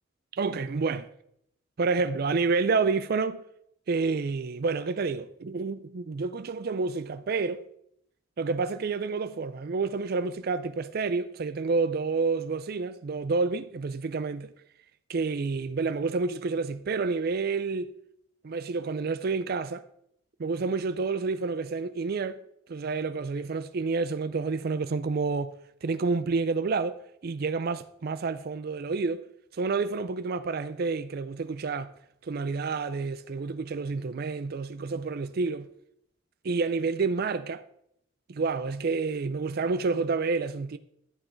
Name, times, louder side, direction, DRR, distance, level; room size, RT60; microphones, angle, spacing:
voice 1, 0.3-1.1 1.8-3.4 3.9-7.6 8.4-14.5 15.1-17.9 18.4-19.8 20.4-22.4 22.7-25.5 25.8-29.3 29.5-31.9 32.2-35.7 36.4-37.6 38.3-40.8, right 4 dB, 50° right, 0.4 m, -29 dB
11.0 x 7.7 x 4.5 m
head